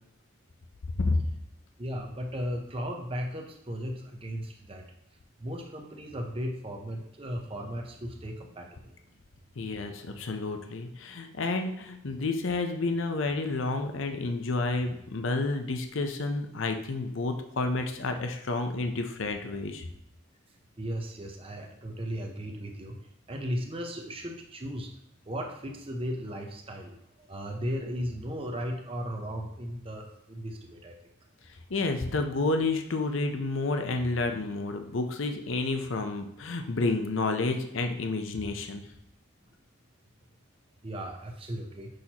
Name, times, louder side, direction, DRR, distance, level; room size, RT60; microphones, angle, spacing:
voice 1, 1.8-4.8 5.4-8.9 20.8-23.0 23.3-24.9 25.3-26.9 27.2-31.0 40.8-41.9, equal, 25° right, 2 dB, 0.7 m, -36 dB
voice 2, 9.6-19.9 31.7-38.8, left 3 dB, 70° left, 5 dB, 0.6 m, -30 dB
6.4 x 5.6 x 2.9 m, 0.79 s
head